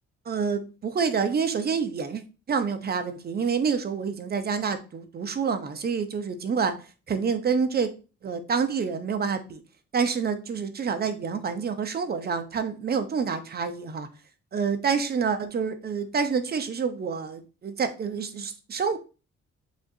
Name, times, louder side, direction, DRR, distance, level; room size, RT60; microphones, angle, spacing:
voice 1, 0.3-2.2 2.5-6.8 7.1-7.9 8.2-9.6 9.9-14.1 14.5-19.0, right 6 dB, 30° right, 0.6 m, -27 dB
7.2 x 2.5 x 2.7 m
cardioid pair, 90°, 30 cm